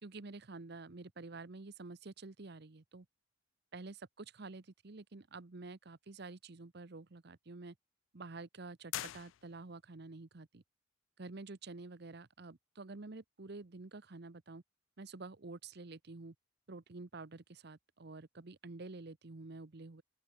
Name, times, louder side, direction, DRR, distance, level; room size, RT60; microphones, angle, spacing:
voice 1, 0.0-3.1 3.7-7.7 8.1-10.6 11.2-14.6 15.0-16.3 16.7-20.0, right 3 dB, 55° right, 0.9 m, -49 dB
sound 1, 8.9-9.9, left 14 dB, 75° left, 0.3 m, -43 dB
open air
head